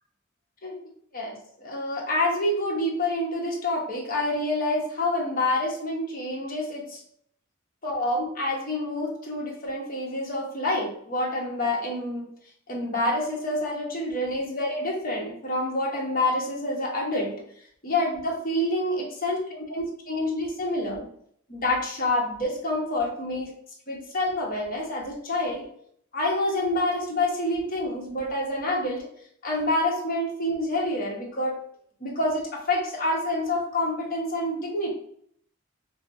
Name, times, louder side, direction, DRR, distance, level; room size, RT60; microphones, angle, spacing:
voice 1, 1.6-7.0 7.8-12.3 12.7-17.4 17.8-21.1 21.5-23.5 23.9-25.7 26.1-29.1 29.4-31.6 32.0-34.9, left 1 dB, 45° left, -2 dB, 1.0 m, -27 dB
5.0 x 2.0 x 2.6 m, 0.65 s
head